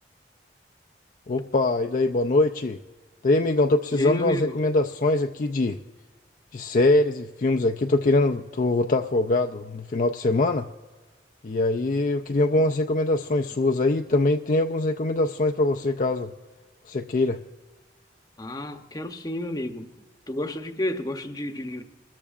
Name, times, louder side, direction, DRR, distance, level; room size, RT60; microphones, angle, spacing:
voice 1, 1.3-2.8 3.2-5.8 6.5-10.7 11.4-16.3 16.9-17.4, left 2 dB, 45° left, 4 dB, 0.4 m, -23 dB
voice 2, 3.9-4.6 12.5-12.7 18.4-19.9 20.3-21.8, left 1 dB, 20° left, 6 dB, 0.8 m, -31 dB
24.0 x 13.5 x 2.5 m, 1.3 s
head